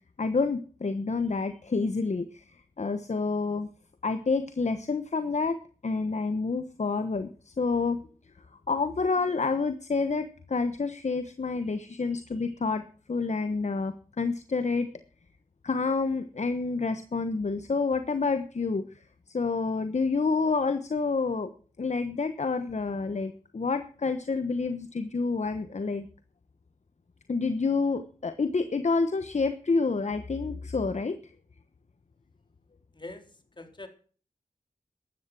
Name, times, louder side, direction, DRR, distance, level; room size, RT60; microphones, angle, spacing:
voice 1, 0.2-2.4 2.8-3.7 4.0-5.6 5.8-8.0 8.7-14.9 15.6-21.5 21.8-26.1 27.3-31.2, left 4 dB, 55° left, 10 dB, 1.2 m, -28 dB
voice 2, 32.9-33.9, left 2 dB, 35° left, 6 dB, 3.7 m, -44 dB
14.0 x 11.0 x 6.1 m, 0.41 s
cardioid pair, 60°, 14 cm